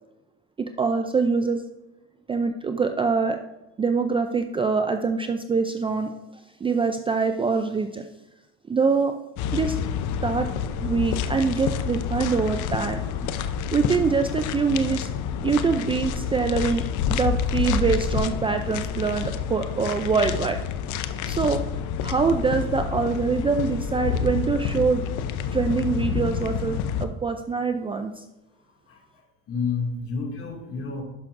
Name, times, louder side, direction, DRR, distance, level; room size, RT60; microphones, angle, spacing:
voice 1, 0.6-1.6 2.3-3.4 3.8-8.0 8.7-9.1 9.5-9.8 10.2-10.5 10.8-13.4 13.7-15.1 15.4-20.6 21.3-21.6 22.0-25.1 25.5-28.2, right 5 dB, 15° right, 7 dB, 0.4 m, -24 dB
sound 1, 9.4-27.1, left 7 dB, 65° left, 0.7 m, -28 dB
voice 2, 29.5-31.0, left 5 dB, 45° left, 0 dB, 2.3 m, -29 dB
11.5 x 5.9 x 2.6 m, 0.99 s
cardioid pair, 110°, 32 cm